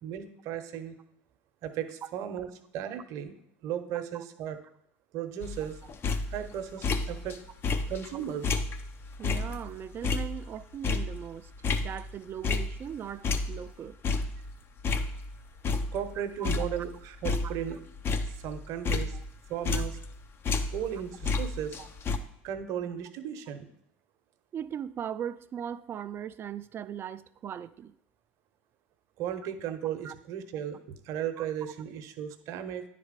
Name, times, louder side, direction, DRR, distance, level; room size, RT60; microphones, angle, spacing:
voice 1, 0.0-1.0 1.6-2.5 2.7-4.6 5.1-5.8 6.3-7.3 7.9-8.6 15.9-17.8 18.3-19.2 19.5-20.0 20.7-21.8 22.4-23.7 29.2-32.8, right 9 dB, 60° right, 9 dB, 0.8 m, -35 dB
sound 1, 5.4-7.4 7.6-13.0 13.2-15.4 15.6-16.2 16.4-20.2 20.4-22.2, left 4 dB, 40° left, 0.7 m, -31 dB
voice 2, 9.2-11.5 11.8-14.0 16.2-16.5 17.4-17.5 19.7-19.8 21.8-21.9 24.5-27.9 30.0-30.1 31.4-31.5, right 9 dB, 40° right, 15 dB, 0.4 m, -39 dB
9.9 x 4.1 x 5.1 m, 0.75 s
hypercardioid pair, 85°, 6 cm